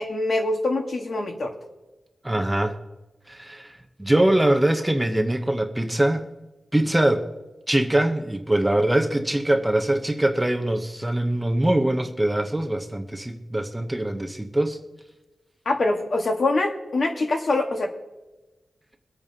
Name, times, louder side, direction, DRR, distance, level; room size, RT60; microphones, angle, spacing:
voice 1, 0.0-1.5 15.6-17.9, left 2 dB, 50° left, 2 dB, 1.5 m, -24 dB
voice 2, 2.2-2.8 3.3-6.2 6.7-7.3 7.7-14.8, right 1 dB, 10° right, 5 dB, 0.8 m, -23 dB
23.0 x 8.6 x 2.8 m, 1.1 s
wide cardioid pair, 150°, 0 cm